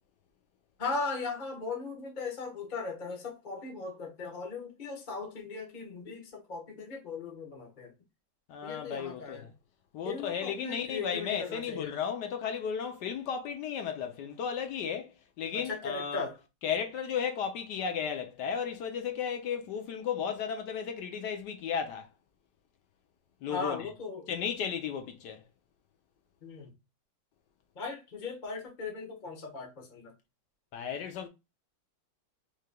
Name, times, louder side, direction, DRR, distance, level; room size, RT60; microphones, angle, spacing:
voice 1, 0.8-7.9 8.6-9.5 10.0-11.9 15.5-16.4 23.5-24.3 26.4-26.7 27.7-30.1, left 4 dB, 30° left, 0.9 m, -38 dB
voice 2, 8.5-9.5 9.9-16.3 16.6-22.1 23.4-23.9 24.3-25.4 30.7-31.3, left 7 dB, 70° left, 1.1 m, -34 dB
4.7 x 3.1 x 2.2 m
omnidirectional pair, 2.3 m